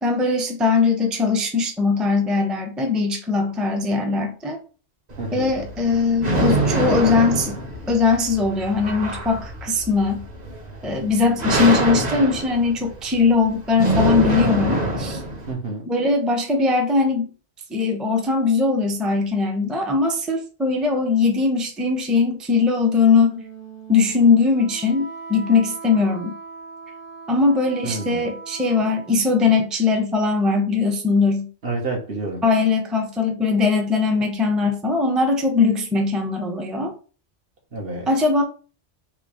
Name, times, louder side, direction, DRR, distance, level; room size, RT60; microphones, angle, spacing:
voice 1, 0.0-4.6 5.3-7.6 7.9-10.2 10.8-15.2 15.9-17.3 17.7-23.4 23.9-26.3 27.3-31.5 32.4-36.9 38.1-38.4, left 4 dB, ahead, 3 dB, 0.6 m, -20 dB
sound 1, 5.1-15.5, right 2 dB, 40° right, 1.2 m, -25 dB
voice 2, 5.2-5.5 15.5-15.8 27.8-28.2 31.6-32.4 37.7-38.1, right 2 dB, 60° right, 0 dB, 1.5 m, -29 dB
Wind instrument woodwind instrument, 23.1-29.3, right 4 dB, 80° right, 1.5 m, -40 dB
3.8 x 2.8 x 4.8 m, 0.38 s
omnidirectional pair, 1.1 m